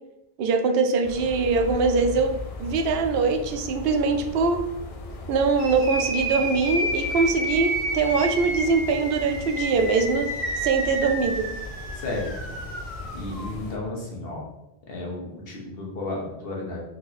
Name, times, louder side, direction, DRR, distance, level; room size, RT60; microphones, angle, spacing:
voice 1, 0.4-4.6 5.3-10.3 10.6-11.5, right 4 dB, 75° right, 5 dB, 0.8 m, -23 dB
sound 1, 1.0-13.8, left 3 dB, 50° left, 0.4 m, -38 dB
sound 2, 5.6-13.5, right 1 dB, 90° left, 1.7 m, -30 dB
voice 2, 11.9-12.6 13.1-14.5 14.9-16.8, left 2 dB, 65° left, -2 dB, 1.2 m, -33 dB
3.6 x 3.1 x 4.1 m, 0.91 s
omnidirectional pair, 1.1 m